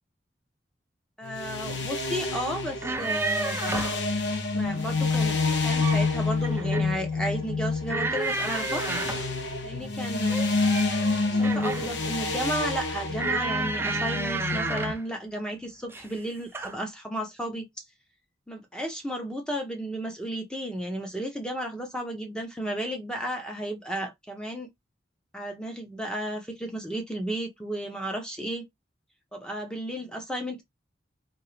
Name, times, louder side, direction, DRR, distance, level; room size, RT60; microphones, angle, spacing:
sound 1, 1.2-14.9, left 3 dB, 70° left, 0.8 m, -28 dB
voice 1, 1.2-3.6 4.5-8.8 9.6-10.4 11.3-17.7 18.5-24.7 25.3-28.7 29.3-30.6, right 1 dB, 5° left, 0.9 m, -33 dB
sound 2, 2.8-4.0 5.5-6.1 6.4-7.0 7.9-9.3 10.3-12.0 13.2-15.0 15.9-16.2 16.5-16.8, right 3 dB, 10° right, 0.3 m, -31 dB
3.6 x 2.9 x 3.2 m
head